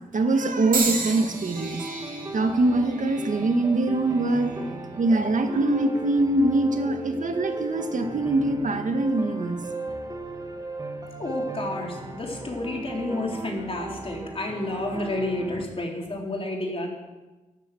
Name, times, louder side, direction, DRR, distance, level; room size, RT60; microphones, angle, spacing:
voice 1, 0.1-1.8 2.3-4.6 5.0-9.7, right 2 dB, 65° right, 6 dB, 1.7 m, -23 dB
sound 1, 0.7-4.9 5.6-6.0 7.0-7.1, right 4 dB, 85° right, 2.7 m, -34 dB
sound 2, 0.9-15.6, right 2 dB, 25° right, 2.1 m, -37 dB
voice 2, 11.2-16.9, left 2 dB, 40° left, 0 dB, 4.0 m, -30 dB
13.0 x 12.5 x 7.8 m, 1.1 s
wide cardioid pair, 100°, 14 cm